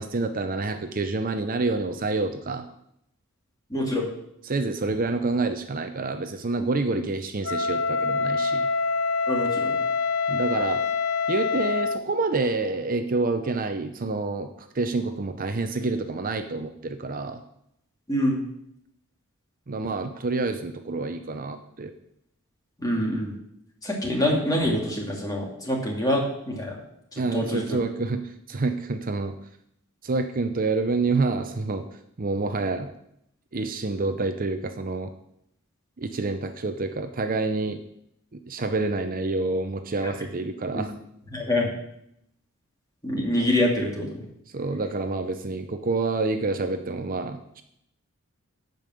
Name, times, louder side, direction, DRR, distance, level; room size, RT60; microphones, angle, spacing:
voice 1, 0.0-2.6 4.5-8.7 10.3-10.8 11.3-17.4 19.7-21.9 27.2-29.3 30.0-31.9 32.2-32.9 33.5-35.1 36.0-37.8 38.3-40.9 44.5-47.6, right 3 dB, 40° right, 7 dB, 0.7 m, -28 dB
voice 2, 3.7-4.1 9.3-9.8 18.1-18.4 22.8-23.3 23.8-26.7 27.1-27.8 40.7-40.9 41.3-41.7 43.0-44.3, left 1 dB, 20° left, -1 dB, 2.5 m, -25 dB
Wind instrument woodwind instrument, 7.4-12.1, left 4 dB, 70° left, 0.6 m, -25 dB
11.5 x 5.4 x 7.7 m, 0.77 s
head